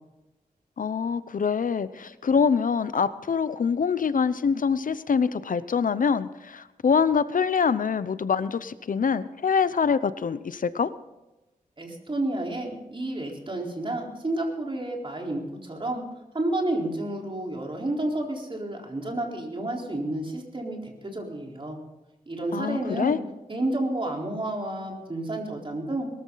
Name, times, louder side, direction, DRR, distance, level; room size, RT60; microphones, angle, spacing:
voice 1, 0.8-10.9 22.5-23.2, left 6 dB, 65° left, 15 dB, 0.7 m, -25 dB
voice 2, 11.8-16.0 16.3-21.8 22.3-23.2 23.5-26.1, right 1 dB, 35° right, 0 dB, 4.1 m, -30 dB
21.5 x 13.5 x 4.0 m, 0.99 s
wide cardioid pair, 85°, 15 cm